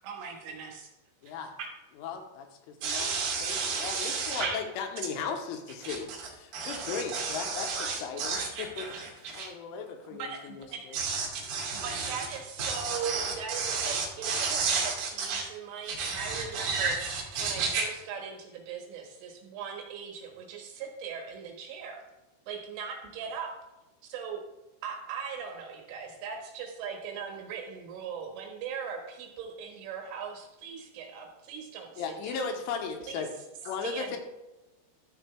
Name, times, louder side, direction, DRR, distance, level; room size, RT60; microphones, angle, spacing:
voice 1, 0.0-0.9 10.1-11.0 11.7-17.0 17.4-22.0 22.5-23.5 24.0-24.4 24.8-32.6 33.1-33.3 33.8-34.2, right 6 dB, 75° right, 3.9 m, -39 dB
voice 2, 2.0-3.1 3.4-8.9 9.4-11.0 32.0-33.3 33.6-34.2, left 6 dB, 80° left, 3.4 m, -37 dB
voice 3, 2.8-4.6 5.8-5.9 6.5-9.5 10.9-12.3 12.6-15.4 15.8-17.8, right 5 dB, 30° right, 1.4 m, -32 dB
13.0 x 7.0 x 3.4 m
omnidirectional pair, 5.9 m